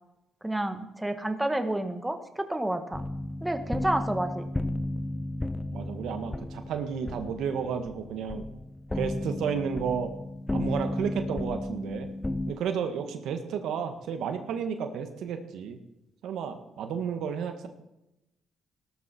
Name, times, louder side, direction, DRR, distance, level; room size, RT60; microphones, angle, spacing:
voice 1, 0.4-3.0 3.4-4.5, right 1 dB, 10° right, 7 dB, 1.7 m, -29 dB
sound 1, 2.9-12.5, left 1 dB, 15° left, 0.9 m, -34 dB
voice 2, 5.7-8.4 8.9-10.1 10.5-12.1 12.5-15.8 16.2-17.7, right 7 dB, 80° right, 7 dB, 1.8 m, -32 dB
18.0 x 13.0 x 4.6 m, 0.88 s
cardioid pair, 90°, 0 cm